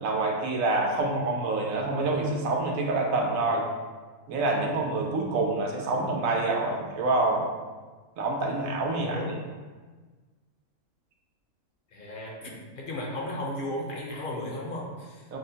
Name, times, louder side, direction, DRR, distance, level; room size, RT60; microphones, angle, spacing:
voice 1, 0.0-3.7 4.3-7.4 8.2-9.3 15.3-15.4, right 2 dB, 80° right, 0 dB, 1.1 m, -27 dB
voice 2, 9.0-9.4 11.9-15.2, left 1 dB, 55° left, -2 dB, 0.6 m, -35 dB
5.8 x 2.1 x 2.7 m, 1.3 s
omnidirectional pair, 1.5 m